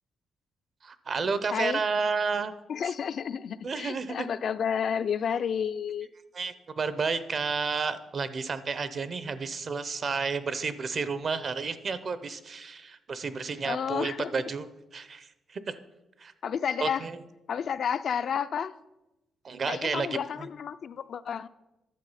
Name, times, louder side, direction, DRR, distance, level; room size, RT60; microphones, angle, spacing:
voice 1, 0.8-2.5 3.6-4.3 6.3-14.7 14.9-15.7 16.2-16.3 16.8-17.1 19.4-20.2, right 4 dB, 45° right, 14 dB, 0.6 m, -31 dB
voice 2, 1.5-1.8 2.7-6.1 13.6-14.3 16.4-17.1 17.5-18.7 19.7-21.5, left 7 dB, 55° left, 13 dB, 0.3 m, -31 dB
10.5 x 7.3 x 5.6 m, 0.99 s
cardioid pair, 125°, 0 cm